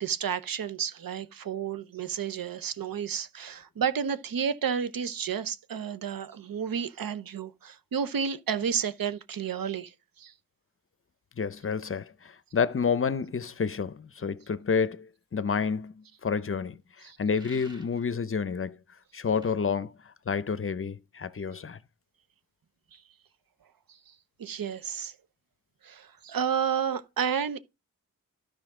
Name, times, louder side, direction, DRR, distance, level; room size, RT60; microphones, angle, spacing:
voice 1, 0.0-9.9 10.2-10.3 17.0-17.2 22.9-23.0 24.4-25.1 25.8-27.6, right 7 dB, 85° right, 0.7 m, -31 dB
voice 2, 11.4-16.8 17.2-18.8 19.1-19.9 20.3-21.8, left 6 dB, 40° left, 0.6 m, -29 dB
sound 1, 17.3-18.1 19.3-19.5, equal, 15° right, 1.7 m, -52 dB
13.0 x 5.1 x 3.7 m
wide cardioid pair, 110°, 34 cm